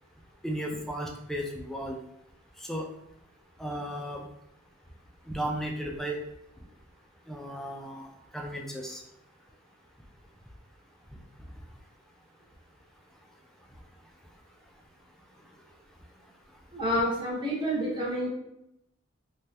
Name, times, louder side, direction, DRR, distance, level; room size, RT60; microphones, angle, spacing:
voice 1, 0.4-2.0 2.6-2.9 3.6-4.3 5.3-6.2 7.3-8.1 8.3-9.0, right 1 dB, ahead, 1 dB, 0.4 m, -34 dB
voice 2, 16.7-18.3, equal, 25° right, -6 dB, 1.1 m, -28 dB
3.3 x 2.3 x 2.7 m, 0.82 s
head